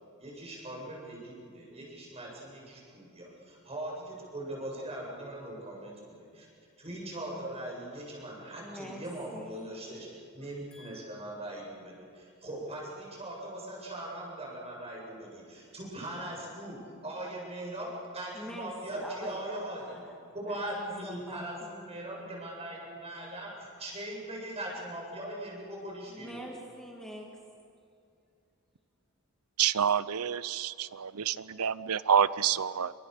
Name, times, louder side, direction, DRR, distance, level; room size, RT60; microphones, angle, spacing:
voice 1, 0.2-6.5 6.8-20.0 20.3-26.4, right 1 dB, 30° right, 7.9 m, -40 dB
voice 2, 8.6-9.0 9.3-9.7 10.7-11.0 18.3-19.4 19.8-21.9 26.1-27.3, equal, 5° left, 2.4 m, -45 dB
voice 3, 29.6-30.9 31.3-32.9, right 8 dB, 90° right, 0.7 m, -27 dB
28.0 x 26.0 x 6.8 m
head